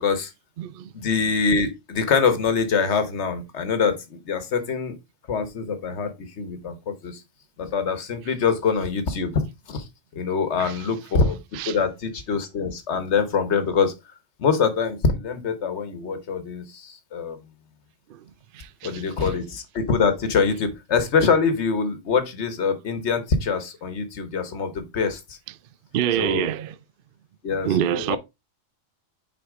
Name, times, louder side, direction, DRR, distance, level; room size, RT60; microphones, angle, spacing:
voice 1, 0.0-0.3 0.9-5.0 5.3-7.2 7.6-13.9 14.4-17.4 18.8-25.4 26.1-26.5 27.4-28.2, left 5 dB, 60° left, 1.3 m, -24 dB
voice 2, 0.6-0.9 10.6-10.7 11.6-11.8 18.1-18.2 18.5-19.0 25.9-26.7 27.6-28.2, right 10 dB, 65° right, 0.5 m, -26 dB
6.1 x 4.6 x 3.6 m
omnidirectional pair, 1.4 m